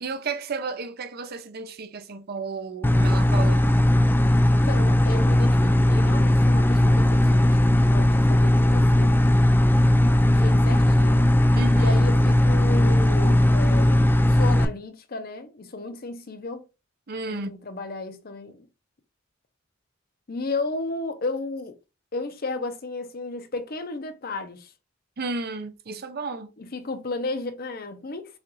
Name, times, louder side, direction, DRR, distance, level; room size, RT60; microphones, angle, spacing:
voice 1, 0.0-3.7 11.6-12.0 17.1-17.5 25.2-26.5, right 3 dB, 50° right, 0.6 m, -33 dB
sound 1, 2.8-14.6, left 1 dB, 10° left, 0.4 m, -18 dB
voice 2, 4.5-9.4 9.8-11.3 11.7-16.7 17.2-18.7 20.3-21.8 22.1-24.7 26.6-28.4, left 3 dB, 50° left, 0.7 m, -34 dB
6.3 x 2.5 x 3.0 m
head